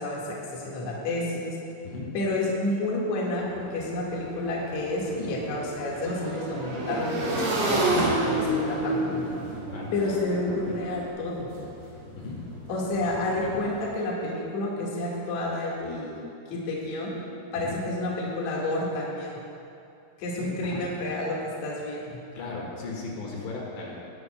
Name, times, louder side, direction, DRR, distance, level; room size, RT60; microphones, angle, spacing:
voice 1, 0.0-1.6 2.1-9.3 9.9-11.5 12.7-16.1 16.5-17.1 17.5-19.3 20.2-21.4 21.6-22.2, left 2 dB, 55° left, -4 dB, 2.2 m, -30 dB
sound 1, 3.3-13.9, equal, 30° right, 3.0 m, -45 dB
Motorcycle / Engine, 3.5-3.6 3.9-11.0, right 1 dB, 85° right, 4.7 m, -29 dB
voice 2, 13.2-13.6 17.6-17.7 20.4-20.8 22.4-24.0, left 3 dB, 75° left, -3 dB, 3.9 m, -37 dB
19.0 x 11.0 x 2.2 m, 2.6 s
omnidirectional pair, 5.5 m